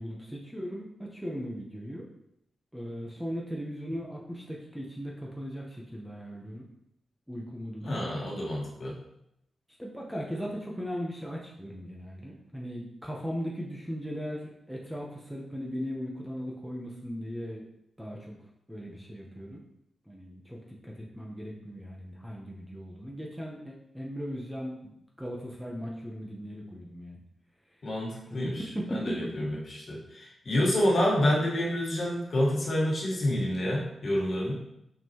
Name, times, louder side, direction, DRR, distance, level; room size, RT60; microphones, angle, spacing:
voice 1, 0.0-2.1 2.7-6.7 7.3-8.0 9.8-17.7 18.0-18.4 18.7-19.6 20.1-27.2 28.3-29.3, equal, ahead, -3 dB, 0.8 m, -38 dB
voice 2, 7.8-8.9 27.8-28.6 28.9-34.5, left 1 dB, 45° left, -3 dB, 1.6 m, -28 dB
5.7 x 5.5 x 2.9 m, 0.79 s
wide cardioid pair, 140°, 0 cm